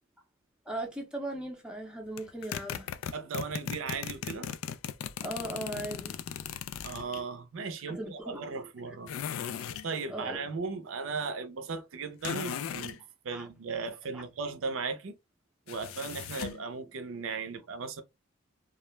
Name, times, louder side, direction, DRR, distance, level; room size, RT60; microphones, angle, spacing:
voice 1, 0.7-2.9 5.2-6.2 7.9-8.6 9.4-9.5 10.1-10.4 13.3-13.5 14.1-14.2, right 1 dB, 5° right, 0.5 m, -38 dB
sound 1, 2.2-7.2 9.1-9.9 12.2-13.0 15.7-16.6, left 8 dB, 80° left, 0.3 m, -37 dB
voice 2, 3.1-4.5 6.8-9.1 9.8-13.0 13.2-15.2 15.7-18.0, right 4 dB, 70° right, 0.5 m, -36 dB
2.3 x 2.1 x 3.0 m
head